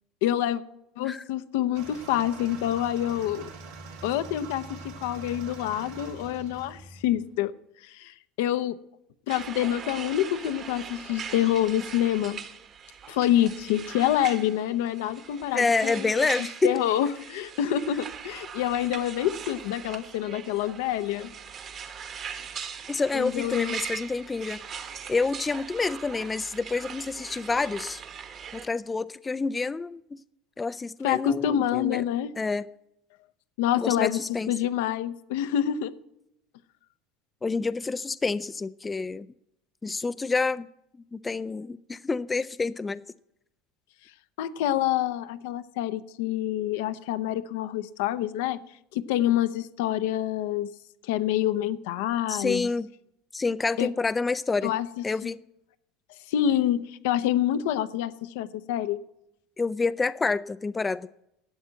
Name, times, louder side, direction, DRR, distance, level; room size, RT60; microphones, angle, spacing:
voice 1, 0.2-0.6 1.0-3.5 4.0-7.5 7.8-8.8 9.3-12.5 13.1-16.3 16.6-21.4 23.1-23.8 31.0-32.3 33.6-35.9 44.4-48.6 48.9-50.7 51.0-52.7 53.8-53.9 54.6-54.9 56.3-59.0, left 11 dB, 80° left, 12 dB, 0.7 m, -27 dB
sound 1, 1.7-7.4, right 4 dB, 85° right, 3.7 m, -44 dB
sound 2, 9.3-28.7, right 7 dB, 45° right, 1.5 m, -40 dB
voice 2, 15.5-16.7 22.9-24.6 25.1-28.0 28.5-30.2 30.6-32.0 32.4-32.7 33.8-34.5 37.4-39.3 39.8-40.7 41.1-43.0 52.3-52.9 53.3-54.7 55.0-55.4 59.6-61.1, left 4 dB, 15° left, 15 dB, 0.4 m, -28 dB
12.0 x 8.1 x 7.6 m, 0.81 s
supercardioid pair, 110°, 0 cm